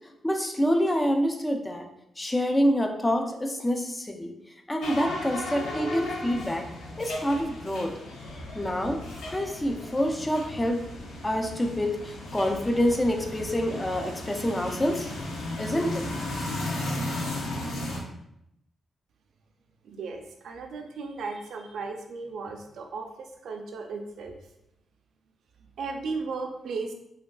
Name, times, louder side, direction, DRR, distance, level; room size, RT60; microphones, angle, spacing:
voice 1, 0.2-1.9 2.2-4.3 4.7-6.7 7.0-7.9 8.6-9.0 9.3-10.8 11.2-15.1 15.6-16.1, equal, 20° left, 4 dB, 0.4 m, -27 dB
sound 1, 4.8-18.0, left 1 dB, 80° left, 0.5 m, -35 dB
voice 2, 19.8-24.4 25.8-26.9, right 4 dB, 75° right, 3 dB, 0.3 m, -35 dB
3.4 x 2.2 x 2.3 m, 0.81 s
cardioid pair, 60°, 0 cm